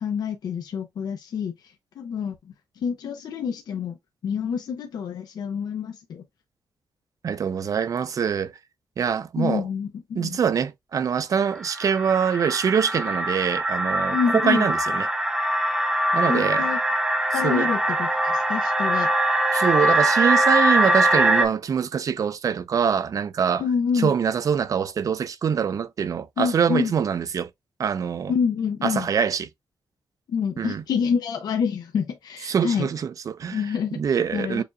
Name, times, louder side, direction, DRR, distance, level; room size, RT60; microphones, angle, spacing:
voice 1, 0.0-2.5 2.8-4.0 4.2-6.2 9.4-10.4 14.1-14.7 16.2-16.8 17.3-19.1 23.6-24.1 26.4-26.9 28.3-29.1 30.3-32.9 33.5-34.0 34.3-34.6, left 6 dB, 85° left, 0.8 m, -27 dB
voice 2, 7.2-8.5 9.0-9.6 10.2-15.1 16.1-16.7 17.4-17.7 19.5-23.6 24.0-27.5 27.8-28.3 28.8-29.5 30.6-30.8 32.5-33.6 34.0-34.6, right 7 dB, 55° right, 0.5 m, -24 dB
sound 1, 11.5-21.5, right 1 dB, 10° right, 0.6 m, -22 dB
6.8 x 2.7 x 2.3 m
wide cardioid pair, 110°, 7 cm